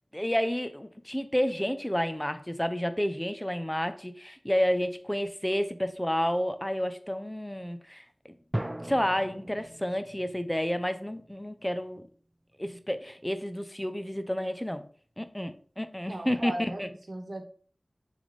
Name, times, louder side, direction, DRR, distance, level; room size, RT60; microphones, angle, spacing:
voice 1, 0.1-8.0 8.8-12.1 12.6-14.8 15.2-16.9, equal, 10° left, 0.7 m, -30 dB
sound 1, 8.5-12.0, right 1 dB, 20° right, 0.4 m, -39 dB
voice 2, 16.1-17.5, right 1 dB, 65° right, 1.2 m, -37 dB
6.8 x 3.4 x 4.1 m
wide cardioid pair, 50°, 0 cm